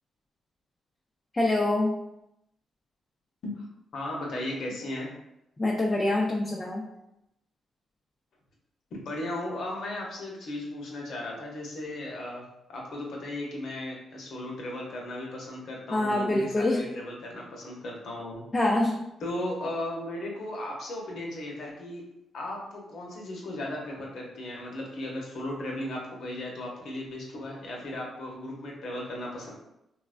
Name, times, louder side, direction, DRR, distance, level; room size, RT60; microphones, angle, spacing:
voice 1, 1.3-1.9 5.6-6.9 15.9-16.8 18.5-19.0, left 2 dB, 25° left, -2 dB, 0.4 m, -25 dB
voice 2, 3.9-5.1 8.9-12.4 12.7-18.4 19.2-22.0 22.3-29.5, left 1 dB, 70° left, -1 dB, 0.8 m, -36 dB
3.1 x 2.1 x 2.4 m, 0.85 s
supercardioid pair, 55°, 0 cm